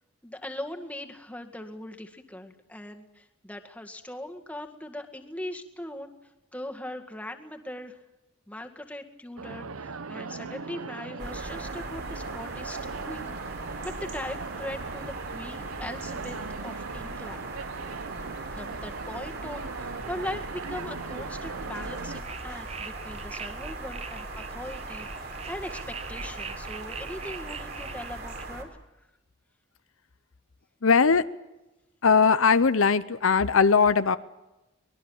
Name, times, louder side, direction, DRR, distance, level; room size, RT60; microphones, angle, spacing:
voice 1, 0.2-6.1 6.5-8.0 8.5-12.8 13.0-16.4 16.6-17.5 18.5-28.8, left 1 dB, 5° left, 4 dB, 1.9 m, -40 dB
sound 1, 9.4-22.2, right 4 dB, 90° right, 0.9 m, -39 dB
sound 2, 11.2-28.6, right 2 dB, 50° right, 3.9 m, -39 dB
sound 3, 22.1-28.5, right 6 dB, 30° right, 0.9 m, -43 dB
voice 2, 30.8-31.2 32.0-34.2, left 5 dB, 75° left, 13 dB, 0.8 m, -20 dB
24.0 x 21.0 x 7.2 m, 1.0 s
head